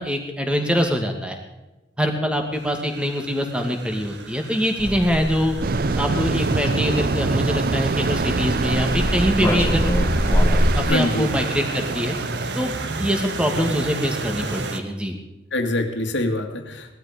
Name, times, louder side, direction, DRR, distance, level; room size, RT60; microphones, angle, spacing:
voice 1, 0.0-1.4 2.0-5.6 6.0-9.9 10.7-12.2 12.5-12.7 13.0-15.2, equal, 5° right, 4 dB, 2.3 m, -24 dB
sound 1, 2.5-14.8, right 3 dB, 70° right, 1.5 m, -33 dB
sound 2, 4.8-10.8, equal, 15° left, 1.7 m, -24 dB
sound 3, 5.6-14.7, right 4 dB, 55° right, 0.5 m, -26 dB
voice 2, 10.8-11.3 15.5-17.0, left 1 dB, 80° left, 5 dB, 2.3 m, -24 dB
19.0 x 13.0 x 5.1 m, 1.0 s
head